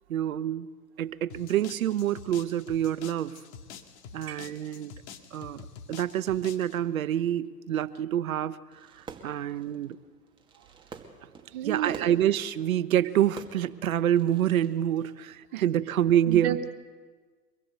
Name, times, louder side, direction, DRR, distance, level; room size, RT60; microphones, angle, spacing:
voice 1, 0.1-0.7 1.0-3.4 4.1-4.9 5.3-5.6 5.9-8.6 8.9-10.0 11.6-16.6, right 11 dB, 55° right, 15 dB, 1.1 m, -27 dB
sound 1, 1.3-6.8, left 7 dB, 45° left, 2.3 m, -47 dB
Fireworks, 8.7-14.7, right 5 dB, 10° right, 2.2 m, -49 dB
voice 2, 11.5-12.1 15.5-15.6 16.3-16.8, right 12 dB, 40° right, 3 dB, 2.5 m, -31 dB
25.0 x 20.5 x 8.1 m, 1.4 s
figure-of-eight pair, 120°, 49 cm